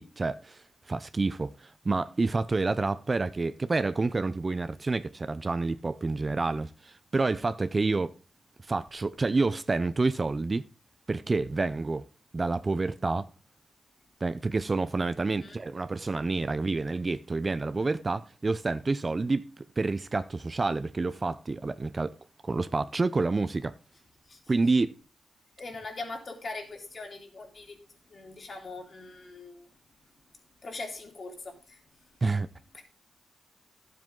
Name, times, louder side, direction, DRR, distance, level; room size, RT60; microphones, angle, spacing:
voice 1, 0.0-8.1 8.7-10.7 11.1-12.0 12.3-13.3 14.2-22.1 22.4-23.7 24.5-24.9 32.2-32.5, right 3 dB, 35° right, 0.5 m, -28 dB
voice 2, 25.6-27.8 28.1-29.7 30.6-31.8, left 3 dB, 50° left, 3.0 m, -41 dB
12.0 x 7.6 x 3.7 m
cardioid pair, 70°, 0 cm